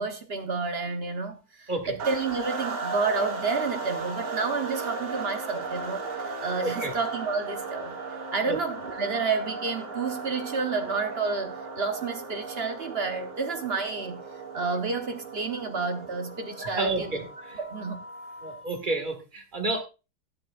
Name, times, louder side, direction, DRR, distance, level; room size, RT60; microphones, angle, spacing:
voice 1, 0.0-6.0 6.4-8.0 8.3-14.2 14.5-17.2 17.6-18.0, right 4 dB, 45° right, 6 dB, 0.8 m, -30 dB
sound 1, 2.0-18.7, right 4 dB, 75° right, 3.1 m, -36 dB
voice 2, 16.6-17.2 17.5-17.6 18.4-19.8, right 2 dB, 25° right, 4 dB, 1.9 m, -30 dB
12.0 x 11.5 x 2.5 m, 0.30 s
omnidirectional pair, 2.3 m